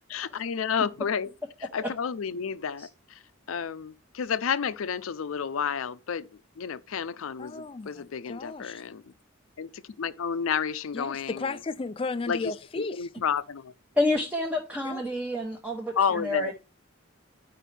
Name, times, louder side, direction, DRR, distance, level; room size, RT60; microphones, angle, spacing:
voice 1, 0.1-1.3 1.6-3.2 3.5-9.1 9.6-11.6 12.3-13.7 16.0-16.5, left 7 dB, 90° left, 0.5 m, -31 dB
voice 2, 7.4-8.8 10.9-13.1 14.8-15.0, left 3 dB, 25° left, 0.3 m, -34 dB
voice 3, 14.0-16.5, left 2 dB, 5° right, 0.9 m, -28 dB
10.0 x 4.9 x 3.3 m
head